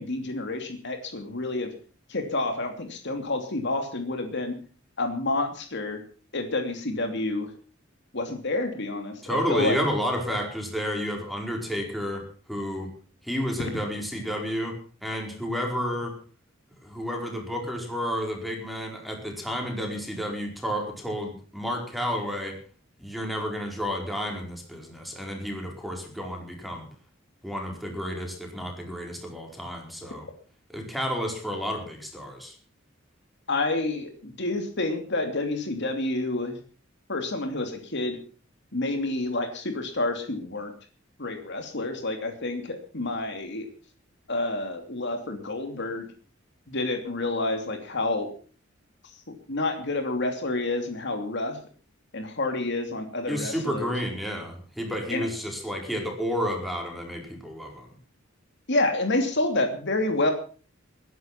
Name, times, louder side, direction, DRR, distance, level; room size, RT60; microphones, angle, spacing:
voice 1, 0.0-1.7 2.1-4.6 5.0-6.0 6.3-7.5 8.1-9.8 33.5-36.6 37.1-38.2 38.7-40.7 41.2-43.7 44.3-46.0 46.7-48.3 49.3-51.6 52.1-53.9 55.1-55.2 58.7-60.3, left 2 dB, 60° left, 6 dB, 2.9 m, -29 dB
voice 2, 9.2-12.9 13.2-16.1 16.8-22.6 23.0-26.9 27.4-30.3 30.7-32.5 53.3-57.9, equal, ahead, 1 dB, 4.7 m, -31 dB
20.0 x 10.5 x 5.9 m, 0.40 s
head